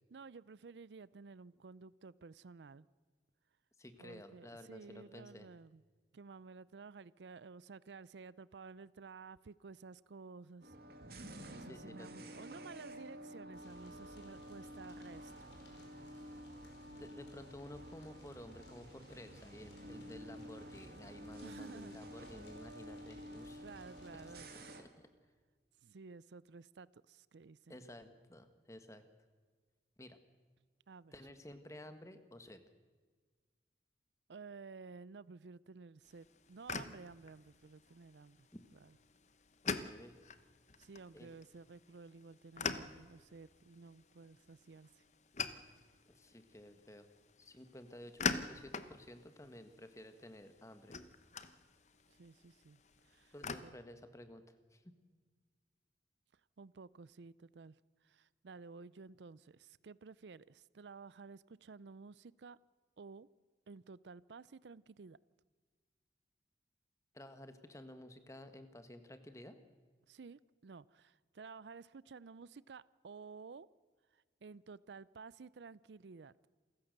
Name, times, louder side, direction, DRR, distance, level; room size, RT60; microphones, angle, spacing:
voice 1, 0.1-2.9 4.0-5.8 6.1-10.7 11.5-15.5 21.4-22.0 23.6-24.8 25.8-27.8 30.9-31.1 34.3-38.5 38.8-38.9 40.8-45.0 52.1-53.3 53.6-53.8 56.3-57.8 58.0-62.6 63.0-63.3 63.7-65.2 70.1-73.7 74.1-76.3, right 4 dB, 85° right, 20 dB, 0.5 m, -53 dB
voice 2, 3.8-5.5 11.7-12.6 17.0-23.6 24.1-24.2 24.8-25.1 27.7-29.0 30.0-30.2 31.1-32.6 38.5-38.6 39.6-40.2 41.1-41.3 46.1-47.1 47.4-50.9 53.3-54.4 54.7-54.9 67.1-69.6, left 1 dB, 15° left, 9 dB, 1.5 m, -53 dB
sound 1, 10.6-24.8, equal, 60° right, 2.4 m, -51 dB
sound 2, 13.5-24.4, left 1 dB, 90° left, 5.4 m, -60 dB
sound 3, 36.0-53.6, left 5 dB, 40° left, 0.9 m, -45 dB
28.0 x 15.5 x 6.7 m, 1.5 s
head